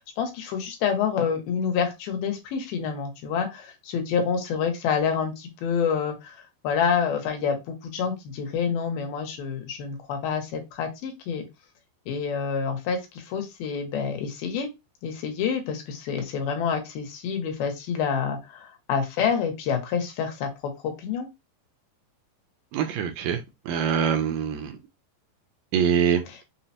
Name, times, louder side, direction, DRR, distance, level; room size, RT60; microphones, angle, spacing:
voice 1, 0.2-11.5 12.1-14.7 15.0-20.5 20.8-21.3 26.3-26.4, left 6 dB, 85° left, 2.7 m, -28 dB
voice 2, 22.7-23.4 23.7-24.8 25.7-26.2, right 8 dB, 80° right, 2.1 m, -24 dB
6.1 x 2.1 x 2.8 m
omnidirectional pair, 4.2 m